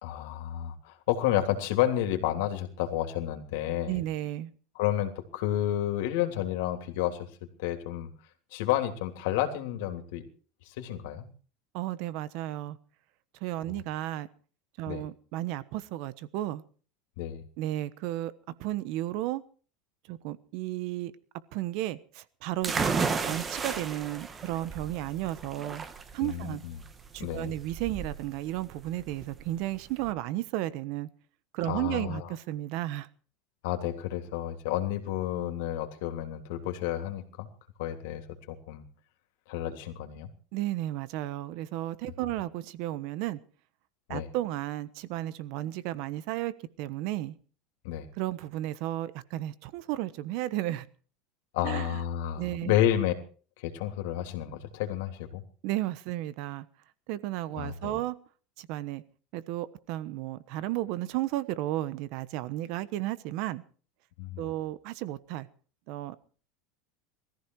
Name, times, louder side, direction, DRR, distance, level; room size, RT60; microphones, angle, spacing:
voice 1, 0.0-4.0 4.7-7.3 7.6-8.1 8.5-10.2 10.7-11.3 14.9-15.0 17.2-17.4 26.2-26.8 27.2-27.5 31.6-32.3 33.6-37.5 37.8-38.2 38.5-38.8 39.5-40.3 44.1-44.3 47.8-48.1 51.5-53.1 53.6-55.4 57.5-58.0 64.2-64.4, left 12 dB, 65° left, 6 dB, 3.2 m, -30 dB
voice 2, 3.9-4.5 11.7-12.8 13.4-14.3 14.8-16.6 17.6-18.3 18.6-19.4 20.1-21.1 21.5-25.9 26.1-26.6 27.1-31.1 31.5-33.1 40.5-43.4 44.1-46.5 46.8-47.4 48.2-50.9 51.6-52.0 52.4-52.8 55.6-56.6 57.1-58.2 58.6-59.0 59.3-63.6 64.4-65.5 65.9-66.2, right 15 dB, 50° right, 16 dB, 1.1 m, -33 dB
sound 1, 22.6-30.1, right 5 dB, 15° right, 1.3 m, -34 dB
20.0 x 14.5 x 4.8 m, 0.41 s
supercardioid pair, 170°, 0 cm